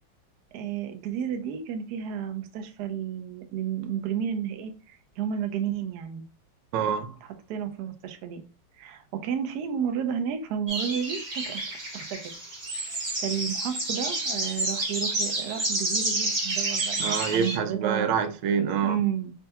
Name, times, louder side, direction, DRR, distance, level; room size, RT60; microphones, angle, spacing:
voice 1, 0.5-6.2 7.2-8.4 8.8-12.3 13.2-18.1 18.9-19.3, right 8 dB, 70° right, 1.0 m, -32 dB
voice 2, 6.7-7.2 17.0-19.0, right 7 dB, 90° right, 1.4 m, -26 dB
sound 1, 10.7-17.6, right 2 dB, 55° right, 0.5 m, -29 dB
4.3 x 2.3 x 2.8 m
omnidirectional pair, 2.2 m